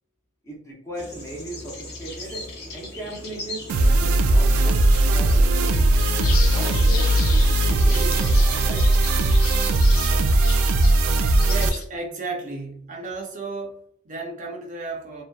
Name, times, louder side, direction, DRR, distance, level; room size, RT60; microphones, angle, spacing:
voice 1, 0.4-5.9 6.5-7.2 7.6-8.9, right 1 dB, 15° left, -2 dB, 0.7 m, -37 dB
sound 1, 0.9-8.6, left 2 dB, 50° left, 0.8 m, -39 dB
sound 2, 3.7-11.7, right 2 dB, 90° right, 0.3 m, -18 dB
sound 3, 6.2-11.8, left 6 dB, 85° left, 0.5 m, -36 dB
voice 2, 11.4-15.2, right 3 dB, 40° right, 0 dB, 0.5 m, -33 dB
2.7 x 2.1 x 2.2 m, 0.66 s
head